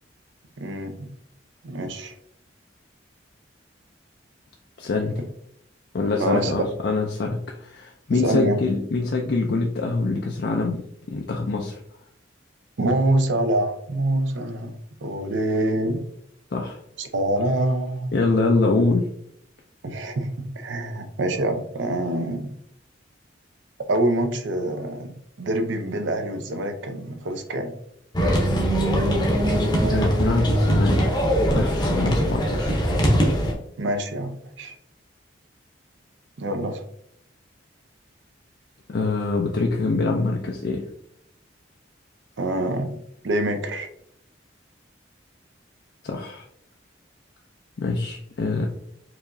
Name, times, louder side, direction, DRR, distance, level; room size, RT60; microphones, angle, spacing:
voice 1, 0.6-1.1 1.6-2.1 6.2-6.5 8.2-8.6 12.8-14.7 15.0-16.0 17.0-18.1 19.8-22.5 23.9-27.7 32.0-32.1 33.8-34.7 36.4-36.8 42.4-43.0 43.2-43.9, right 1 dB, 75° right, 7 dB, 0.6 m, -25 dB
voice 2, 4.8-5.2 5.9-11.7 16.5-16.8 18.1-19.0 29.9-31.0 31.5-32.8 38.9-40.9 46.0-46.5 47.8-48.7, left 3 dB, 55° left, 1 dB, 0.4 m, -24 dB
sound 1, 28.1-33.5, equal, 20° left, 0.7 m, -21 dB
4.6 x 3.0 x 2.6 m, 0.71 s
head